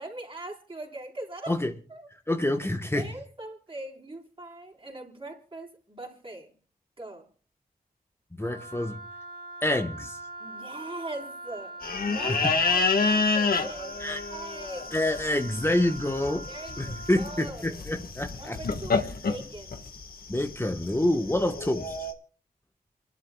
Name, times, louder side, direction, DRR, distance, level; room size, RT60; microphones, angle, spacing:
voice 1, 0.0-1.6 1.9-2.1 2.9-6.5 7.0-7.3 10.4-14.0 14.3-15.1 16.5-17.8 18.3-19.9 21.4-21.5, right 2 dB, 35° right, 4.1 m, -41 dB
voice 2, 2.3-3.1 8.3-9.0 9.6-10.2 14.0-14.2 14.9-16.5 16.8-18.6 20.3-21.8, left 1 dB, 15° left, 1.1 m, -27 dB
Wind instrument woodwind instrument, 8.4-17.5, right 1 dB, 90° right, 2.0 m, -43 dB
sound 1, 11.8-22.1, left 4 dB, 75° left, 1.5 m, -29 dB
28.0 x 12.0 x 2.3 m
cardioid pair, 60°, 15 cm